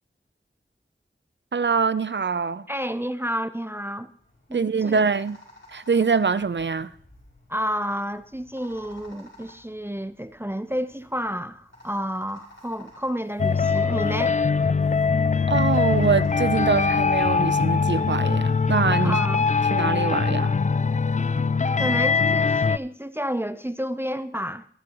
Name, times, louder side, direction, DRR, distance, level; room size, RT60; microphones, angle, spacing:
voice 1, 1.5-2.7 4.5-5.4 5.7-6.9 15.5-19.2 19.7-20.6, right 5 dB, 60° right, 0.5 m, -24 dB
voice 2, 2.7-4.1 4.5-5.0 7.5-14.4 19.0-19.5 21.8-24.7, equal, 10° right, 0.6 m, -30 dB
sound 1, 4.1-17.3, left 1 dB, 80° left, 5.6 m, -53 dB
sound 2, 13.4-22.8, left 5 dB, 35° left, 0.4 m, -22 dB
22.5 x 8.9 x 3.0 m
wide cardioid pair, 45°, 21 cm